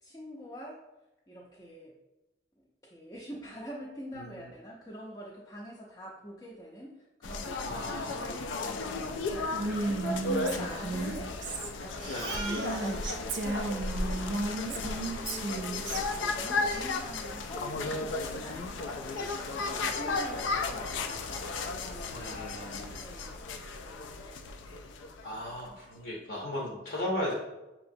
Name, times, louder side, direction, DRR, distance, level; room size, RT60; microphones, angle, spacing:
voice 1, 0.0-0.8 1.3-1.9 2.8-6.9 7.2-9.0 9.3-21.3 21.7-22.2 22.7-23.3 23.8-24.4 25.0-25.2, equal, 20° left, -4 dB, 0.5 m, -45 dB
sound 1, 7.2-25.7, left 3 dB, 85° left, 0.4 m, -35 dB
voice 2, 7.6-8.5 12.1-12.4 22.1-22.9 25.2-27.3, left 1 dB, 60° left, -3 dB, 0.8 m, -36 dB
Female speech woman speaking, 9.5-13.0 13.3-16.0, right 2 dB, 75° right, 0.6 m, -34 dB
Crying sobbing, 12.0-13.2 13.6-13.7 13.9-14.3 16.1-16.2 16.7-17.5 17.8-18.0 18.3-18.4 18.8-19.4, right 3 dB, 25° right, 0.7 m, -43 dB
5.8 x 2.9 x 2.6 m, 1.0 s
head